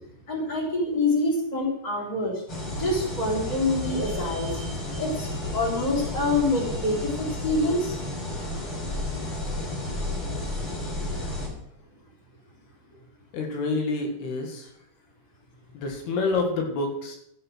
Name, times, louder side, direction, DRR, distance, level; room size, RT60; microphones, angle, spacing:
voice 1, 0.3-2.4 2.7-8.0, left 2 dB, 10° left, -2 dB, 2.9 m, -26 dB
sound 1, 2.5-11.5, left 1 dB, 35° left, 4.0 m, -32 dB
voice 2, 13.3-14.7 15.7-17.2, left 3 dB, 80° left, 2 dB, 3.9 m, -28 dB
13.0 x 7.8 x 6.4 m, 0.73 s
omnidirectional pair, 4.6 m